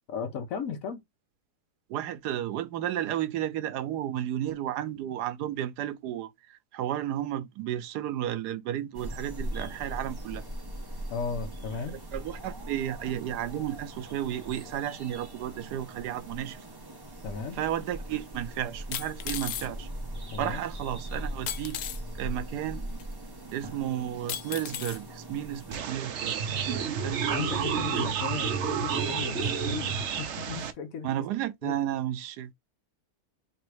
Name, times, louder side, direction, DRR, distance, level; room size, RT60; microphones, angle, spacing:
voice 1, 0.1-1.0 11.1-12.0 17.2-17.6 20.3-20.6 27.3-31.3 31.6-31.8, left 5 dB, 65° left, 1.2 m, -36 dB
voice 2, 1.9-10.4 12.1-16.6 17.6-19.9 20.4-21.8 22.2-22.8 23.5-28.1 31.0-32.5, right 11 dB, 85° right, 1.2 m, -33 dB
sound 1, 8.9-25.8, right 1 dB, 20° right, 0.8 m, -40 dB
sound 2, 17.6-17.7 18.9-19.7 21.5-22.0 23.0-23.1 24.3-25.0 25.7-25.8, left 11 dB, 90° left, 1.2 m, -35 dB
sound 3, 25.7-30.7, right 7 dB, 60° right, 0.8 m, -30 dB
3.2 x 3.0 x 4.7 m
omnidirectional pair, 1.7 m